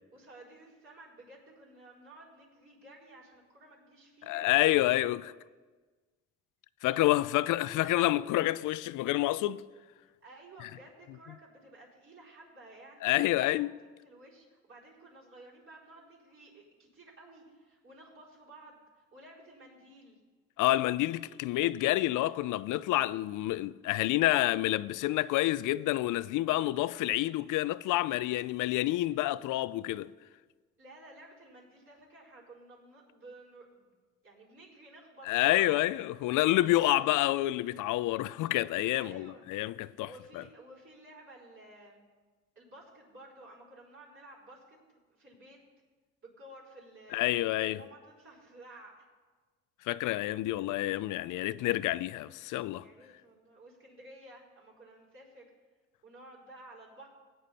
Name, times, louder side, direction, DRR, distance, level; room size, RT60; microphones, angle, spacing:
voice 1, 0.1-4.5 6.8-7.7 10.0-13.7 14.0-20.2 30.8-33.9 34.2-35.7 36.6-37.2 38.9-39.5 39.8-42.1 42.5-45.6 46.2-49.1 52.8-55.4 56.0-57.1, right 1 dB, 45° right, 4.7 m, -53 dB
voice 2, 4.2-5.3 6.8-9.6 13.0-13.7 20.6-30.1 35.3-40.4 47.1-47.8 49.9-52.9, left 16 dB, 85° left, 0.5 m, -28 dB
16.5 x 9.3 x 4.2 m
cardioid pair, 90°, 30 cm